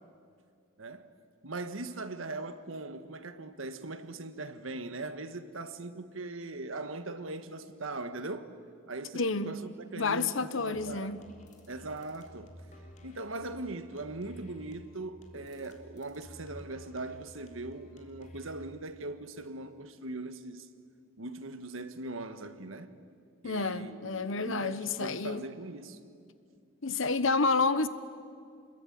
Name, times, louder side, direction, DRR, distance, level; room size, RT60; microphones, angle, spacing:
voice 1, 0.8-1.1 1.4-8.5 8.9-11.2 11.7-12.6 13.0-20.7 21.2-23.0 23.4-26.0, right 2 dB, 80° right, 1.5 m, -40 dB
voice 2, 9.1-9.6 10.0-11.3 23.4-25.5 26.8-27.9, left 3 dB, 75° left, 1.1 m, -29 dB
sound 1, 10.7-18.7, equal, 40° left, 3.4 m, -52 dB
28.0 x 21.5 x 9.4 m
head